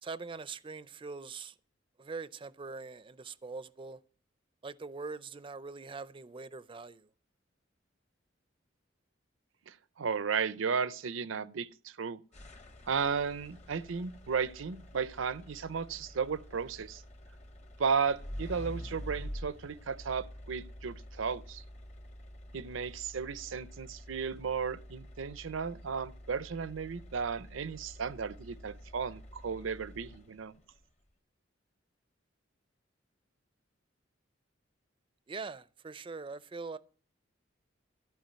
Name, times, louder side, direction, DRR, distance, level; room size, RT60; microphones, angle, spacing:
voice 1, 0.0-1.6 2.0-4.0 4.6-7.1 35.3-36.8, right 4 dB, 25° right, 0.4 m, -42 dB
voice 2, 9.7-12.2 12.9-17.0 17.8-21.6 22.5-30.5, right 6 dB, 85° right, 0.6 m, -34 dB
sound 1, 12.3-30.6, equal, 35° left, 0.9 m, -48 dB
13.5 x 4.6 x 8.8 m
head